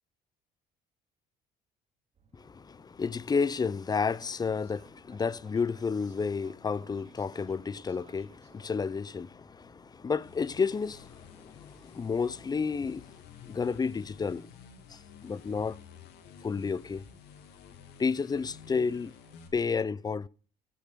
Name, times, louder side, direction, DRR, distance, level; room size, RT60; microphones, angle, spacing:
sound 1, 2.1-19.5, right 5 dB, 40° right, 3.1 m, -63 dB
voice 1, 2.3-13.1 13.4-14.5 14.9-15.8 16.4-17.1 18.0-19.1 19.5-20.3, left 5 dB, 25° left, 0.5 m, -31 dB
sound 2, 10.1-19.5, left 7 dB, 80° left, 2.8 m, -52 dB
16.5 x 6.6 x 6.8 m
cardioid pair, 110°, 17 cm